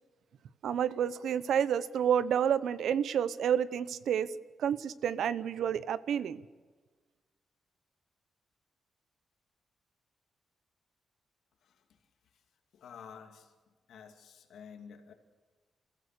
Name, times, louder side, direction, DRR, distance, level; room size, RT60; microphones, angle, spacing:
voice 1, 0.6-4.3 4.6-6.4, right 8 dB, 80° right, 16 dB, 0.8 m, -29 dB
voice 2, 12.7-13.5 13.9-15.1, left 7 dB, 90° left, 5 dB, 2.5 m, -50 dB
29.0 x 15.5 x 6.8 m, 1.4 s
wide cardioid pair, 170°, 0 cm